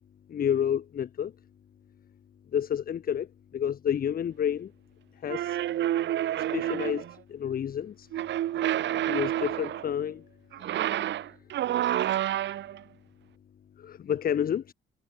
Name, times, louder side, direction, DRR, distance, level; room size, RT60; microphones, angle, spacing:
voice 1, 0.3-1.3 2.5-4.7 5.2-5.6 6.4-8.1 9.1-10.3 10.6-10.8 13.8-14.7, left 9 dB, 45° left, 0.8 m, -30 dB
sound 1, 5.3-7.1 8.1-9.9 10.5-12.8, right 12 dB, 65° right, 0.7 m, -29 dB
cardioid pair, 90°, 20 cm